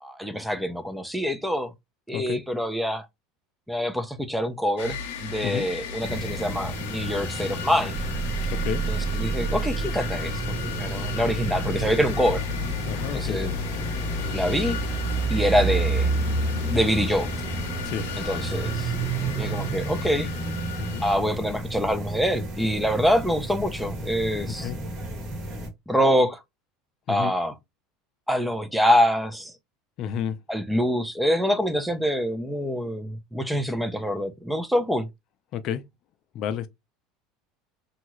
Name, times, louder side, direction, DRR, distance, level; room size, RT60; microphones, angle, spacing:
voice 1, 0.0-1.7 2.1-3.1 3.7-8.0 8.9-10.3 10.6-12.4 13.1-13.5 14.3-14.8 15.3-16.1 16.7-17.3 18.3-18.9 19.4-20.3 21.0-24.7 25.9-26.4 27.1-27.5 28.3-29.5 30.5-35.1, equal, ahead, 0.5 m, -25 dB
sound 1, 4.8-21.2, left 5 dB, 90° left, 0.7 m, -36 dB
sound 2, 6.0-25.7, equal, 45° right, 1.1 m, -34 dB
sound 3, 7.9-21.7, right 3 dB, 65° right, 0.8 m, -30 dB
voice 2, 12.9-13.4 17.8-18.1 20.8-21.0 24.5-24.8 27.1-27.3 30.0-30.4 35.5-35.8 36.3-36.7, left 9 dB, 50° left, 0.4 m, -30 dB
2.8 x 2.3 x 3.0 m
supercardioid pair, 120°, 0 cm